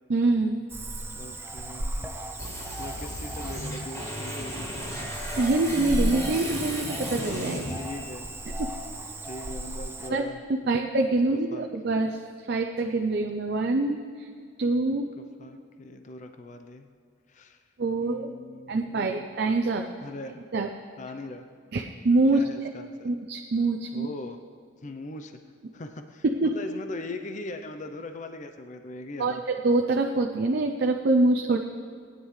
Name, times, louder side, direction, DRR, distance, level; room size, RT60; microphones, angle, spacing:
voice 1, 0.1-0.6 5.4-7.6 10.1-10.3 10.7-14.3 14.6-15.1 17.8-18.3 18.7-19.9 20.5-20.7 21.7-22.4 23.0-24.1 26.2-26.5 29.2-31.6, right 2 dB, 55° right, 3 dB, 0.5 m, -25 dB
Cricket / Frog, 0.7-10.1, right 1 dB, 10° right, 0.6 m, -35 dB
voice 2, 1.1-2.2 2.8-4.8 7.7-8.3 9.2-10.4 10.7-10.8 11.3-11.7 14.9-15.0 15.4-16.9 17.3-17.6 18.0-19.3 20.0-20.4 21.0-21.5 22.3-23.1 23.9-24.4 24.8-25.4 25.7-29.4, left 2 dB, 40° left, 6 dB, 0.6 m, -40 dB
sound 1, 2.4-8.4, left 1 dB, 15° left, 2.5 m, -36 dB
18.5 x 9.8 x 3.2 m, 2.2 s
head